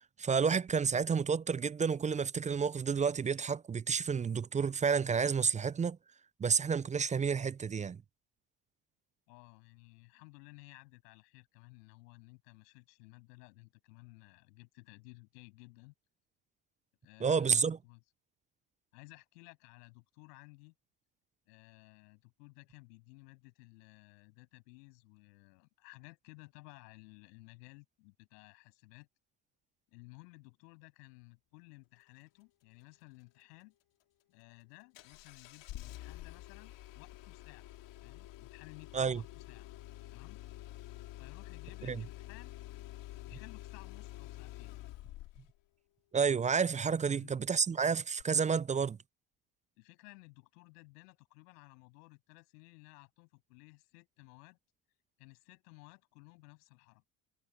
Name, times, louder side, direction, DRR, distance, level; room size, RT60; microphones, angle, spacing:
voice 1, 0.0-6.0 6.4-8.0 17.2-17.8 38.9-39.2 41.9-42.0 46.1-49.0, right 6 dB, 15° right, 0.4 m, -30 dB
voice 2, 9.3-15.9 17.0-18.0 18.9-20.7 21.5-29.1 29.9-33.7 34.3-37.7 38.0-39.7 40.1-40.4 41.2-42.5 43.3-44.8 47.1-47.4 49.8-54.6 55.2-57.0, left 27 dB, 85° left, 7.7 m, -57 dB
Engine starting, 34.9-45.6 48.2-48.3, left 16 dB, 65° left, 2.9 m, -48 dB
hypercardioid pair, 75°, 47 cm